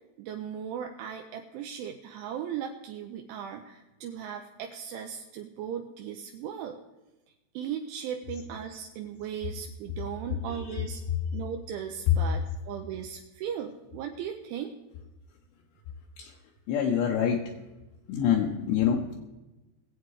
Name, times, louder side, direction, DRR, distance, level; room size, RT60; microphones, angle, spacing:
voice 1, 0.2-6.8 7.5-11.0 11.3-14.7, right 8 dB, 80° right, 4 dB, 3.1 m, -37 dB
voice 2, 10.5-10.9 12.1-12.2 16.2-16.3 16.7-17.5 18.1-19.2, left 9 dB, 75° left, 0 dB, 2.9 m, -26 dB
21.0 x 8.0 x 4.8 m, 1.0 s
omnidirectional pair, 5.7 m